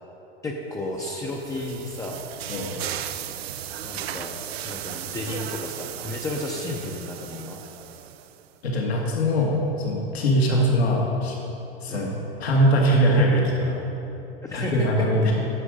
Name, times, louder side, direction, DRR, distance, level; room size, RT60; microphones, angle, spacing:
voice 1, 0.4-2.2 3.8-4.4 4.6-7.6 10.5-10.7 11.9-12.1 14.4-15.1, left 2 dB, 10° left, -2 dB, 0.6 m, -33 dB
sound 1, 0.9-8.5, right 11 dB, 75° right, 0.5 m, -36 dB
voice 2, 8.6-11.3 11.8-13.8 14.5-15.3, equal, 85° left, -2 dB, 1.7 m, -22 dB
10.0 x 6.3 x 5.0 m, 3.0 s
hypercardioid pair, 110°, 31 cm